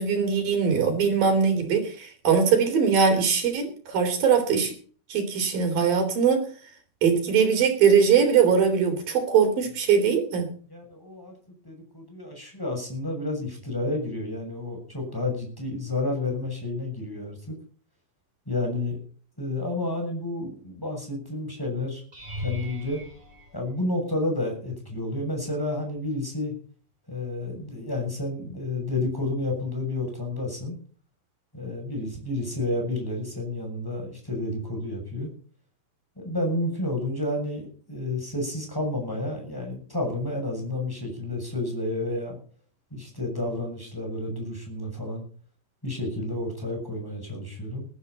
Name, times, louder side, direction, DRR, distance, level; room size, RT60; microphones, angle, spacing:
voice 1, 0.0-4.7 5.1-6.5 7.0-10.5, right 6 dB, 80° right, 5 dB, 5.2 m, -21 dB
voice 2, 10.7-17.6 18.4-19.0 19.4-22.0 22.4-23.0 23.5-26.5 27.1-30.8 31.5-35.3 36.2-42.4 42.9-45.2 45.8-47.9, left 2 dB, 5° left, 1 dB, 6.7 m, -30 dB
sound 1, 22.1-24.4 25.1-25.5 25.9-26.0 30.4-30.5, left 2 dB, 15° right, 3.0 m, -39 dB
20.0 x 12.5 x 4.1 m, 0.43 s
omnidirectional pair, 4.0 m